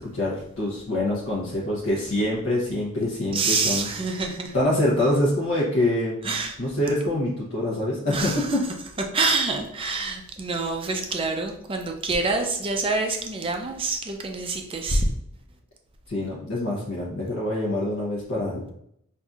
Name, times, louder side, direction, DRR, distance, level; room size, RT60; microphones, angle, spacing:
voice 1, 0.0-3.9 4.5-6.2 6.6-8.6 16.1-18.6, left 1 dB, 60° left, -6 dB, 0.9 m, -25 dB
voice 2, 3.3-4.5 6.2-6.6 8.1-8.6 9.1-15.1, right 3 dB, 25° right, 4 dB, 0.5 m, -26 dB
5.6 x 2.6 x 2.4 m, 0.72 s
head